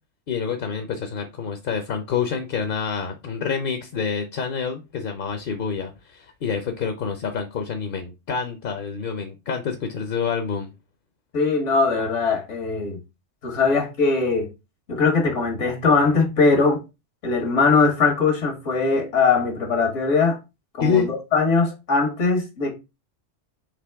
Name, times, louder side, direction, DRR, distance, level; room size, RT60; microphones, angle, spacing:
voice 1, 0.3-10.7 20.8-21.1, left 6 dB, 55° left, 0.7 m, -27 dB
voice 2, 11.3-13.0 13.4-14.5 14.9-16.8 17.2-20.4 20.8-22.7, left 4 dB, 80° left, 1.6 m, -20 dB
5.1 x 3.0 x 3.3 m
omnidirectional pair, 1.2 m